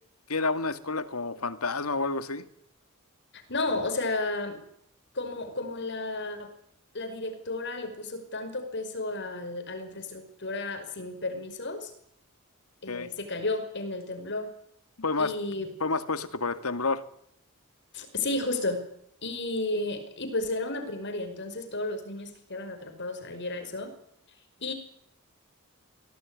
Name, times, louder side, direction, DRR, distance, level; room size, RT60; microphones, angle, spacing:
voice 1, 0.3-2.5 12.9-13.1 15.0-15.4 15.8-17.0, left 3 dB, 85° left, 12 dB, 2.2 m, -29 dB
voice 2, 3.5-4.6 5.1-6.5 6.9-11.9 12.8-14.5 15.2-15.7 17.9-18.8 19.2-23.9 24.6-24.7, left 2 dB, 55° left, 8 dB, 5.4 m, -33 dB
24.0 x 17.5 x 9.9 m, 0.70 s
head